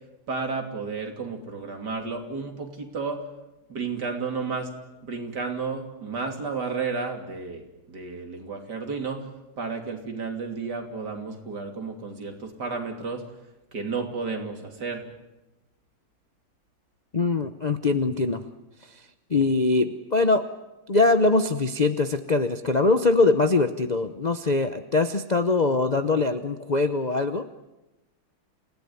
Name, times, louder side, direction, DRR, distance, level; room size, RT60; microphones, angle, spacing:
voice 1, 0.3-3.2 3.7-4.7 5.0-9.3 9.6-13.2 13.7-15.0, right 4 dB, 50° right, 3 dB, 3.5 m, -32 dB
voice 2, 17.1-18.4 19.3-20.4 20.9-27.4, left 3 dB, 65° left, 7 dB, 0.4 m, -22 dB
28.5 x 17.0 x 9.7 m, 1.0 s
omnidirectional pair, 2.4 m